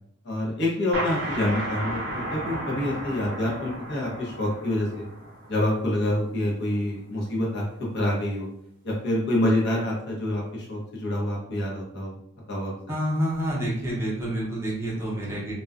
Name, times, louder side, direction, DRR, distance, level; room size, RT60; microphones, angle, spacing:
voice 1, 0.2-5.0 5.5-7.6 7.9-8.5 8.8-12.1 12.5-12.7, left 1 dB, 55° left, -3 dB, 0.8 m, -27 dB
sound 1, 0.9-6.3, right 1 dB, 60° right, 0.7 m, -34 dB
voice 2, 12.9-15.5, equal, 10° right, -5 dB, 0.6 m, -28 dB
2.4 x 2.2 x 2.3 m, 0.73 s
head